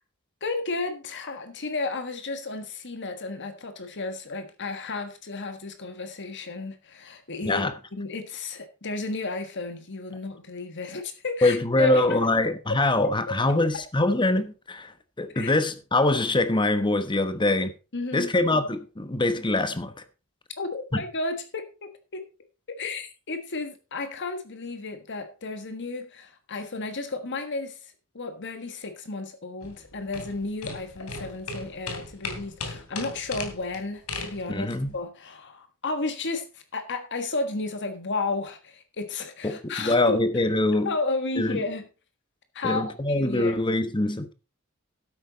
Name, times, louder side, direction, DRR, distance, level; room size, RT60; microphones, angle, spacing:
voice 1, 0.4-7.6 8.0-12.2 15.3-15.5 17.9-18.3 20.6-22.2 22.7-34.7 34.9-40.2 40.8-41.8 42.5-42.8 43.1-43.6, left 3 dB, 55° left, 1.5 m, -33 dB
voice 2, 7.4-7.8 11.4-17.7 18.1-20.0 20.9-21.1 34.5-34.9 39.4-41.0 41.3-41.7 42.6-44.3, left 2 dB, 20° left, 1.1 m, -24 dB
sound 1, 29.6-34.9, left 3 dB, 90° left, 3.1 m, -37 dB
12.0 x 9.0 x 4.0 m
head